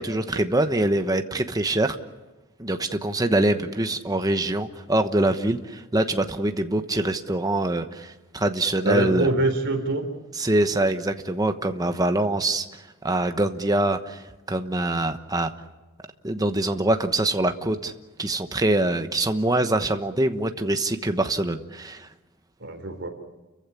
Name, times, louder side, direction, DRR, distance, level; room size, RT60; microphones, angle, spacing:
voice 1, 0.0-2.0 2.6-9.3 10.4-15.5 16.2-17.9 18.2-22.1, right 1 dB, 15° right, 7 dB, 1.1 m, -24 dB
voice 2, 8.8-10.0 22.6-23.1, right 2 dB, 55° right, 5 dB, 4.1 m, -24 dB
30.0 x 15.5 x 10.0 m, 1.1 s
head